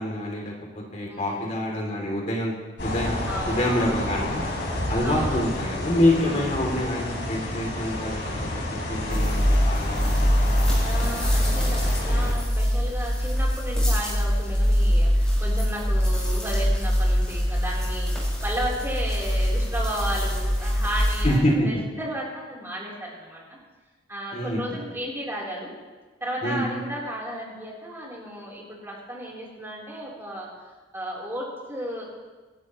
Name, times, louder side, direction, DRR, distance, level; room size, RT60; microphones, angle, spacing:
voice 1, 0.0-2.5 2.8-4.4 4.9-8.2 8.5-8.6 8.9-10.3 21.2-21.8 24.3-24.8 26.4-26.6, left 1 dB, 40° left, -1 dB, 3.0 m, -26 dB
voice 2, 1.1-1.6 3.3-3.9 5.0-5.5 6.1-6.7 10.8-23.6 24.1-25.7 26.2-30.5 30.9-32.0, right 1 dB, 15° right, -5 dB, 4.0 m, -34 dB
sound 1, 2.8-12.3, left 1 dB, 75° left, 4.3 m, -30 dB
sound 2, 9.1-21.3, equal, 5° left, 5.4 m, -23 dB
27.0 x 12.5 x 3.2 m, 1.3 s
head